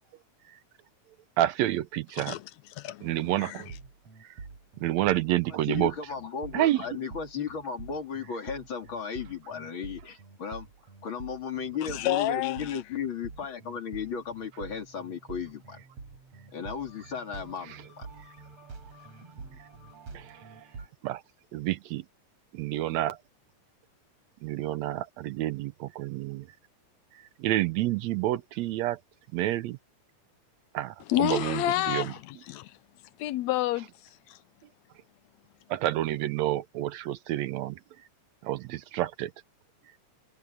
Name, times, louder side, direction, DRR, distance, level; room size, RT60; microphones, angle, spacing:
voice 1, 1.4-2.4 3.0-3.7 4.8-5.9 6.5-6.9 20.1-20.3 21.0-21.2 21.5-22.0 22.5-23.2 24.4-26.5 27.4-29.0 29.3-29.8 30.7-32.1 35.7-37.8 38.4-39.3, right 14 dB, 80° right, 1.8 m, -29 dB
voice 2, 2.8-3.6 11.8-12.8 31.1-32.7 33.2-33.9 34.3-34.4, left 15 dB, 75° left, 1.8 m, -29 dB
sound 1, 3.7-20.9, right 4 dB, 60° right, 5.4 m, -47 dB
voice 3, 5.5-10.7 11.0-15.8 16.5-18.1, left 6 dB, 45° left, 3.2 m, -35 dB
omnidirectional pair, 3.3 m